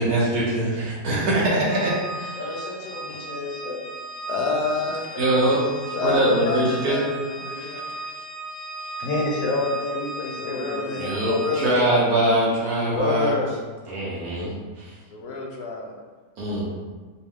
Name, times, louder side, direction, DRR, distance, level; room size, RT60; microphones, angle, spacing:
voice 1, 0.0-2.4 5.2-5.6 6.0-7.0 11.0-13.3 13.9-14.9 16.4-16.6, right 1 dB, 70° right, -6 dB, 1.6 m, -23 dB
Organ, 1.6-12.0, right 2 dB, 40° left, 0.6 m, -36 dB
voice 2, 2.4-3.9 9.0-11.8 12.9-13.6, left 2 dB, 60° left, -2 dB, 1.2 m, -28 dB
voice 3, 4.3-5.3 5.9-8.1 9.0-9.1 10.4-12.0 15.1-15.9, left 3 dB, 80° left, 0 dB, 1.2 m, -29 dB
5.0 x 2.3 x 3.6 m, 1.4 s
omnidirectional pair, 1.7 m